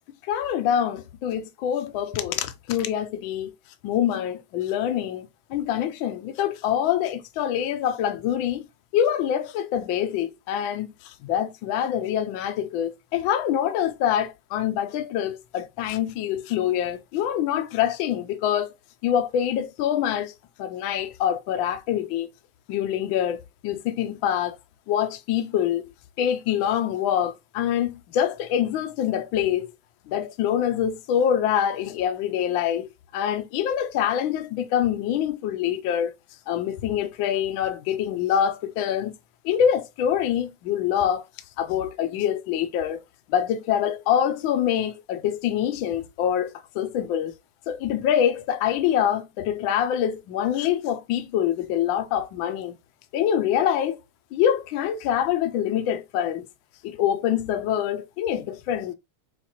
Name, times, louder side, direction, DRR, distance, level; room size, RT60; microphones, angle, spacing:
voice 1, 0.2-3.5 3.8-8.6 8.9-18.7 19.0-20.3 20.6-22.3 22.7-24.6 24.9-25.8 26.2-29.7 30.1-36.1 36.5-39.1 39.4-41.2 41.6-43.0 43.3-47.3 47.7-52.8 53.1-54.0 54.3-56.5 56.8-58.9, left 9 dB, 75° left, 1.3 m, -25 dB
7.1 x 2.4 x 2.9 m
omnidirectional pair, 2.3 m